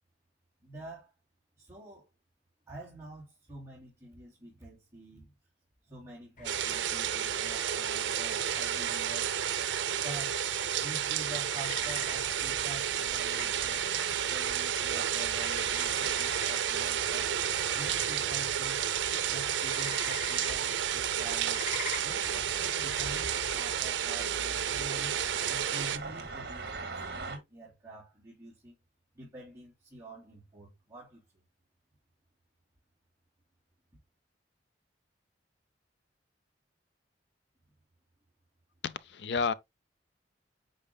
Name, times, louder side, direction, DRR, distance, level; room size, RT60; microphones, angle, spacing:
voice 1, 0.6-1.1 1.6-2.1 2.7-5.3 5.8-9.3 9.8-10.4 10.8-13.9 14.3-17.4 17.7-18.9 19.3-21.6 22.0-25.2 25.5-28.7 29.1-31.2, right 1 dB, 15° right, 3.3 m, -47 dB
sound 1, 6.4-24.0, left 3 dB, 45° left, 1.9 m, -46 dB
sound 2, 6.4-26.0, right 9 dB, 90° right, 0.6 m, -31 dB
sound 3, 11.8-27.4, right 3 dB, 60° right, 1.8 m, -47 dB
voice 2, 38.8-39.5, left 5 dB, 70° left, 0.5 m, -31 dB
8.6 x 5.3 x 2.3 m
head